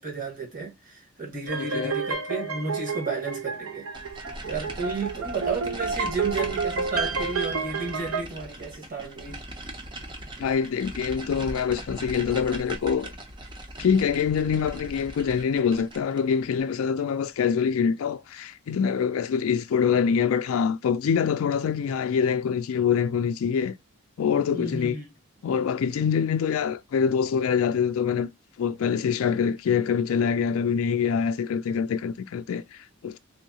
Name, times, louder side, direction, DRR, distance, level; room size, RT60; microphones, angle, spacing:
voice 1, 0.0-3.8 4.4-9.4 24.5-25.0, right 4 dB, 40° right, 1.4 m, -32 dB
sound 1, 1.5-8.2, right 5 dB, 70° right, 0.6 m, -30 dB
voice 2, 1.6-2.0 10.4-13.1 13.8-23.7 24.2-25.0 25.4-28.3 28.6-33.2, left 7 dB, 70° left, 0.3 m, -25 dB
sound 2, 3.9-16.3, right 1 dB, 20° right, 0.6 m, -39 dB
3.4 x 2.7 x 2.7 m
head